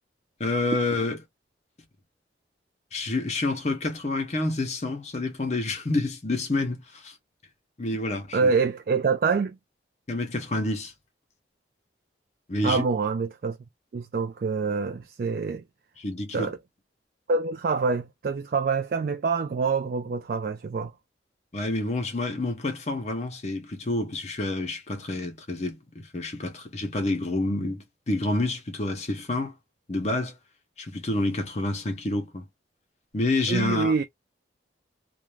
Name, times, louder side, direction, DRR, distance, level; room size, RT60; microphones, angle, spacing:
voice 1, 0.4-1.2 2.9-7.2 7.8-8.5 10.1-10.9 12.5-12.8 16.0-16.5 21.5-29.5 29.9-30.3 30.8-32.4 33.1-33.9, left 2 dB, 35° left, 0.6 m, -28 dB
voice 2, 8.3-9.6 12.6-13.6 13.9-15.6 16.3-16.6 17.3-20.9 33.5-34.0, right 4 dB, 50° right, 0.3 m, -26 dB
2.4 x 2.1 x 3.0 m
head